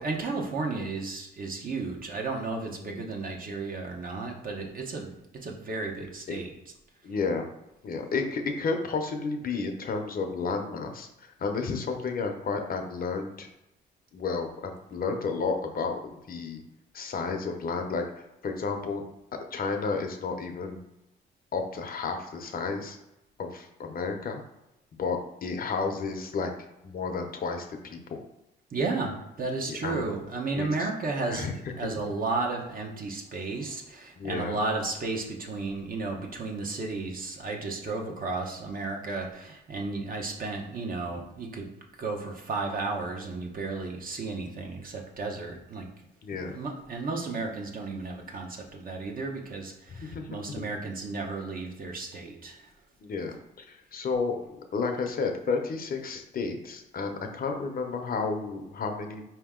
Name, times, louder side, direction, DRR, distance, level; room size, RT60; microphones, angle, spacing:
voice 1, 0.0-5.1 5.4-6.7 28.7-31.5 31.8-41.7 42.0-45.9 46.4-52.7, right 3 dB, 45° right, 1 dB, 1.0 m, -33 dB
voice 2, 2.8-3.1 6.3-6.4 7.0-7.5 7.8-13.5 14.1-16.6 16.9-19.0 19.5-20.8 21.5-23.0 23.4-24.4 25.0-26.5 26.8-28.2 29.6-30.1 30.5-30.9 31.3-31.5 31.8-31.9 34.2-34.6 38.1-38.2 46.2-46.6 49.9-50.3 50.6-50.7 53.0-59.2, left 4 dB, 50° left, 4 dB, 0.7 m, -32 dB
4.6 x 2.8 x 3.7 m, 0.91 s
cardioid pair, 90°, 20 cm